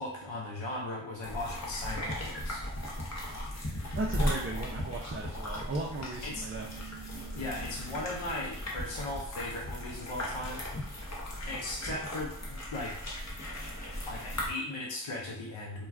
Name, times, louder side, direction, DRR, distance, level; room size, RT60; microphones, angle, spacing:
voice 1, 0.0-2.6 6.2-6.5 7.3-10.6 11.5-13.0 14.1-15.9, left 2 dB, 75° left, -1 dB, 0.6 m, -38 dB
sound 1, 1.2-14.5, left 1 dB, 35° left, 0.8 m, -37 dB
sound 2, 2.3-2.4 2.8-2.9 3.3-3.4 3.8-3.9 4.3-4.4 4.8-4.9 5.3-5.4 5.8-5.9 6.3-8.1, right 7 dB, 60° left, 1.2 m, -47 dB
voice 2, 3.9-6.7, right 2 dB, 30° right, -2 dB, 0.4 m, -36 dB
2.3 x 2.2 x 3.3 m, 0.66 s
wide cardioid pair, 45°, 46 cm